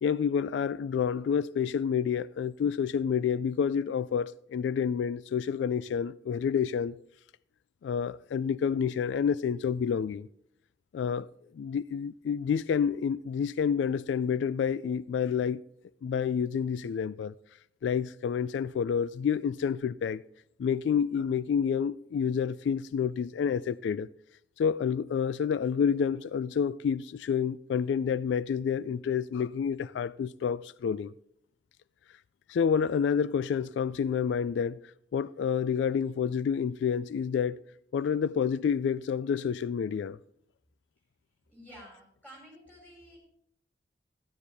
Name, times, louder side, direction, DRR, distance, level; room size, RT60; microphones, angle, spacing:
voice 1, 0.0-7.0 7.8-10.3 10.9-11.3 11.5-15.6 16.0-17.3 17.8-20.2 20.6-24.1 24.6-31.1 32.5-34.8 35.1-37.6 37.9-40.2, left 7 dB, 90° left, 0.3 m, -29 dB
voice 2, 41.5-43.2, equal, 10° left, 5.3 m, -51 dB
12.0 x 11.5 x 3.4 m
head